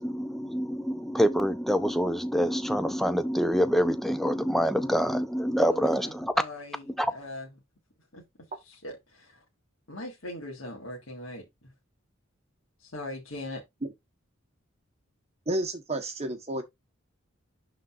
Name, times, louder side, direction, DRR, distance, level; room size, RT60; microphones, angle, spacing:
voice 1, 0.0-6.3 7.0-7.1, equal, ahead, 0.5 m, -26 dB
voice 2, 5.7-7.5 8.1-8.2 8.6-9.4 9.9-11.7 12.8-13.6, left 1 dB, 70° left, 1.7 m, -41 dB
voice 3, 15.5-16.6, right 1 dB, 30° right, 1.0 m, -31 dB
11.5 x 3.9 x 2.4 m
head